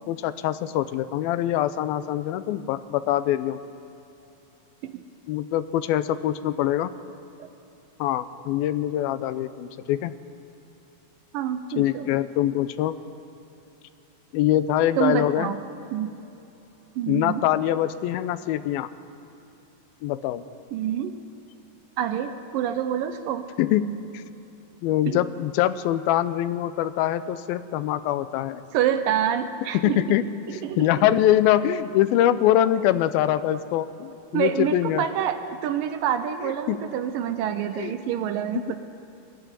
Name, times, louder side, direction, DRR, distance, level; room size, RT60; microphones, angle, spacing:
voice 1, 0.1-3.6 5.3-6.9 8.0-10.1 11.8-13.0 14.3-15.5 17.1-18.9 20.0-20.5 23.6-24.2 24.8-28.6 29.8-30.2 30.5-35.1 36.4-36.8 37.8-37.9 38.5-38.8, left 12 dB, 85° left, 13 dB, 2.5 m, -24 dB
voice 2, 11.3-12.1 15.0-15.6 15.9-16.2 17.0-17.4 20.7-21.1 22.0-23.5 25.1-25.2 28.7-30.0 30.5-31.1 34.3-38.8, right 9 dB, 75° right, 9 dB, 2.2 m, -27 dB
22.0 x 12.5 x 9.6 m, 2.9 s
omnidirectional pair, 4.3 m